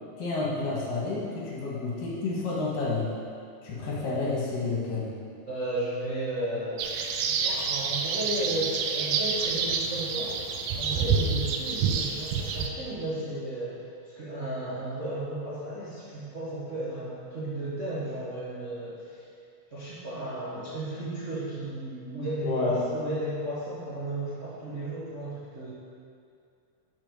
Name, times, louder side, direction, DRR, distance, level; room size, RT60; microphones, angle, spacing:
voice 1, 0.2-3.1 3.6-5.1 22.4-22.8, left 3 dB, 70° left, -5 dB, 3.3 m, -30 dB
voice 2, 5.5-7.0 7.3-10.4 10.7-19.2 19.7-25.7, right 1 dB, 40° right, -10 dB, 1.0 m, -34 dB
sound 1, 6.8-12.7, right 5 dB, 80° right, 2.0 m, -28 dB
9.0 x 5.2 x 6.5 m, 2.4 s
omnidirectional pair, 4.0 m